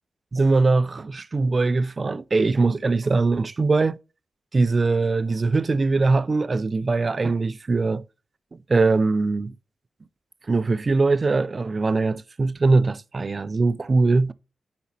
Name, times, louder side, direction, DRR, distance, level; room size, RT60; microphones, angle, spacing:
voice 1, 0.3-4.0 4.5-8.0 8.7-9.5 10.5-14.3, right 3 dB, 45° right, 0.4 m, -21 dB
9.5 x 4.2 x 2.8 m
supercardioid pair, 40°, 0 cm